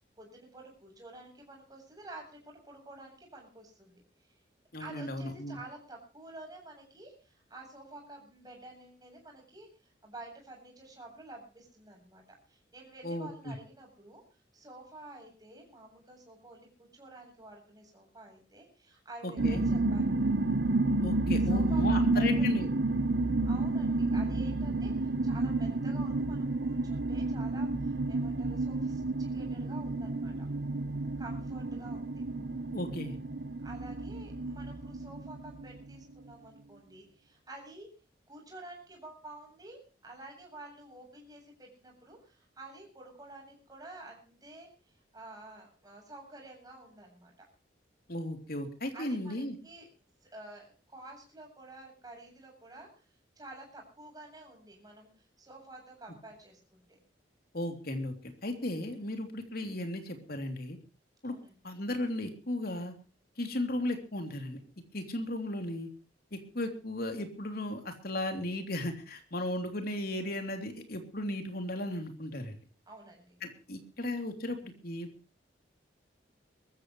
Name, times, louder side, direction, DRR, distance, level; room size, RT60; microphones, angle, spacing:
voice 1, 0.2-4.0 4.8-14.2 14.5-20.3 21.3-22.5 23.5-30.5 31.2-32.2 33.6-37.9 38.3-44.7 45.1-47.5 48.9-49.9 50.3-52.9 53.4-55.1 55.4-57.0 61.2-61.6 72.9-73.4, right 2 dB, 20° right, 1 dB, 7.9 m, -50 dB
voice 2, 4.7-5.6 13.0-13.5 19.2-19.6 21.0-22.7 32.7-33.2 48.1-49.6 57.5-60.8 61.2-61.4 61.6-62.9 63.4-64.6 64.9-65.9 66.3-72.6 73.4-75.1, left 1 dB, 55° left, 5 dB, 3.2 m, -35 dB
sound 1, 19.4-35.9, right 2 dB, 75° right, 1.0 m, -30 dB
23.0 x 14.5 x 3.2 m, 0.34 s
head